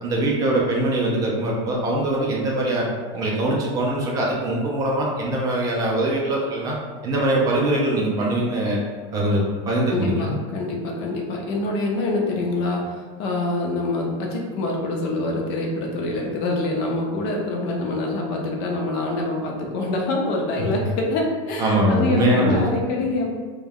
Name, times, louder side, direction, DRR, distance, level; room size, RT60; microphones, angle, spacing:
voice 1, 0.0-2.9 3.1-6.8 7.0-8.8 9.1-10.4 20.7-20.8 21.6-22.7, right 1 dB, 20° right, -3 dB, 0.4 m, -22 dB
voice 2, 9.9-23.3, left 2 dB, 50° left, 0 dB, 0.5 m, -25 dB
2.2 x 2.2 x 3.4 m, 1.5 s
supercardioid pair, 165°, 16 cm